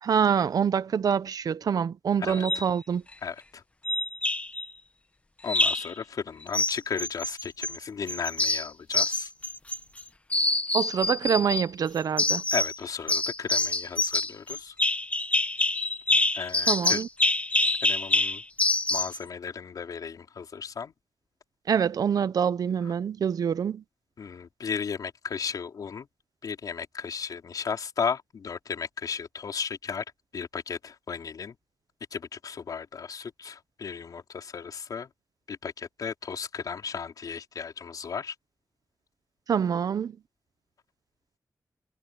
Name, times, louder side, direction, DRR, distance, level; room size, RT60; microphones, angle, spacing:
voice 1, 0.0-3.0 10.7-12.4 16.7-17.1 21.7-23.8 39.5-40.2, right 7 dB, 85° right, 0.8 m, -26 dB
sound 1, 2.3-2.7 3.8-4.6 5.5-5.9 6.5-7.8 8.1-10.0 10.3-11.6 12.2-12.8 13.1-19.2, left 2 dB, 20° left, 1.1 m, -26 dB
voice 2, 3.2-3.6 5.4-9.3 12.5-14.7 16.3-17.0 17.8-18.4 18.9-20.9 24.2-26.1 26.4-30.0 30.3-31.6 32.1-35.1 35.5-38.3, left 6 dB, 85° left, 4.5 m, -35 dB
wide cardioid pair, 145°, 6 cm